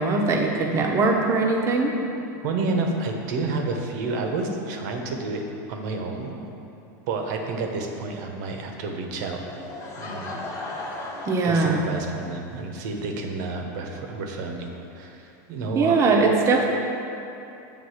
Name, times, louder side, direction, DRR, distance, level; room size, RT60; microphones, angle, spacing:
voice 1, 0.0-1.9 11.3-11.8 15.7-16.7, right 3 dB, 30° right, 1 dB, 0.8 m, -21 dB
voice 2, 2.4-6.5 7.1-9.4 10.0-10.4 11.4-16.0, right 3 dB, 70° right, 2 dB, 1.0 m, -30 dB
Laughter / Crowd, 9.5-12.3, left 2 dB, 30° left, 1.1 m, -36 dB
7.2 x 3.6 x 6.4 m, 2.8 s
supercardioid pair, 140°, 10 cm